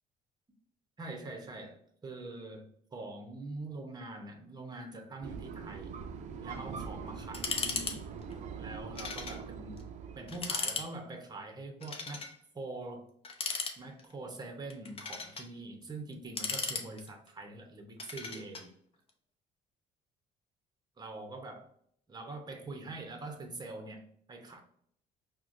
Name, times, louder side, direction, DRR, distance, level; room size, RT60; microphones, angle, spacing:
voice 1, 1.0-5.9 6.4-8.1 8.6-9.8 10.1-13.0 13.8-18.7 21.0-21.7 22.1-24.6, right 2 dB, 25° right, 4 dB, 0.8 m, -44 dB
sound 1, 5.2-10.8, right 6 dB, 45° right, 0.4 m, -43 dB
sound 2, 7.3-8.3 9.0-9.4 9.8-9.9 10.3-10.9 11.8-12.3 13.2-14.1 14.7-15.5 16.1-17.3 18.0-18.7, left 4 dB, 35° left, 0.6 m, -36 dB
4.4 x 2.1 x 2.5 m, 0.66 s
cardioid pair, 110°, 17 cm